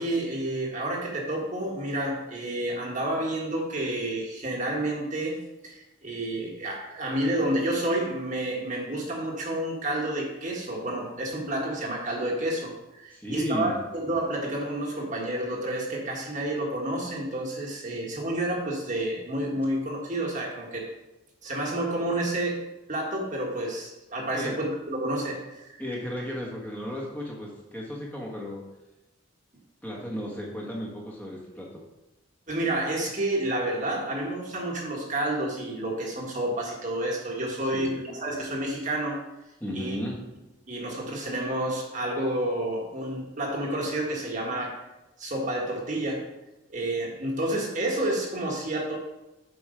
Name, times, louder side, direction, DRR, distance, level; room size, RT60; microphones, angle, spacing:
voice 1, 0.0-5.4 5.6-20.9 21.4-22.6 22.9-25.8 32.5-39.2 39.7-40.0 40.7-44.8 45.2-46.3 46.7-49.0, right 1 dB, 40° right, -1 dB, 1.6 m, -30 dB
voice 2, 13.1-13.8 24.3-24.5 25.8-28.6 29.8-31.8 37.7-37.9 39.6-40.2, left 1 dB, 10° left, -3 dB, 1.4 m, -34 dB
8.0 x 5.1 x 5.1 m, 0.99 s
head